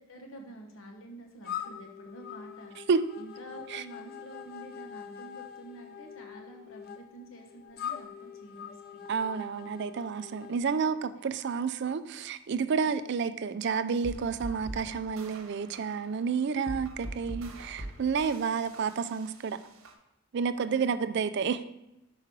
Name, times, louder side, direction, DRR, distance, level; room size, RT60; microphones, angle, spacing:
voice 1, 0.0-2.9 3.2-9.0 10.8-11.2 20.5-21.1, right 1 dB, 65° left, 1.1 m, -48 dB
sound 1, 1.4-10.6, left 9 dB, 45° left, 0.4 m, -43 dB
voice 2, 9.1-19.6 20.3-21.6, right 5 dB, 50° right, 0.4 m, -30 dB
sound 2, 14.0-19.9, right 1 dB, 70° right, 1.1 m, -43 dB
6.1 x 4.7 x 4.6 m
head